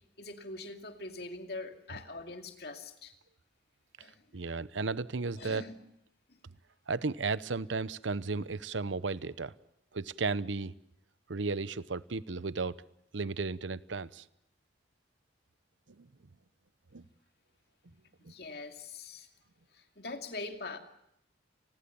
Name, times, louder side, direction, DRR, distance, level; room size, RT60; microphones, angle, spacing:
voice 1, 0.0-3.1 4.0-4.4 5.4-5.8 6.3-6.4 18.2-19.3 19.7-20.8, left 3 dB, 55° left, 5 dB, 2.5 m, -43 dB
voice 2, 4.3-5.7 6.9-9.5 9.9-10.7 11.3-12.8 13.1-14.2 16.0-16.1 16.9-17.0, right 4 dB, 85° right, 17 dB, 0.8 m, -34 dB
29.5 x 20.5 x 7.0 m, 0.79 s
head